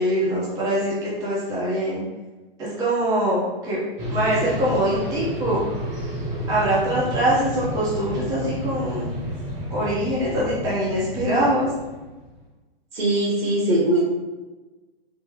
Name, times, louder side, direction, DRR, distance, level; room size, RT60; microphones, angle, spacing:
voice 1, 0.0-2.0 2.6-3.8 4.1-5.6 6.5-9.1 9.7-11.7, right 1 dB, 10° right, -7 dB, 0.6 m, -23 dB
sound 1, 4.0-12.3, equal, 30° right, 1.0 m, -31 dB
voice 2, 12.9-14.0, right 1 dB, 75° right, -3 dB, 1.4 m, -21 dB
3.5 x 2.0 x 3.3 m, 1.2 s
hypercardioid pair, 130°, 30 cm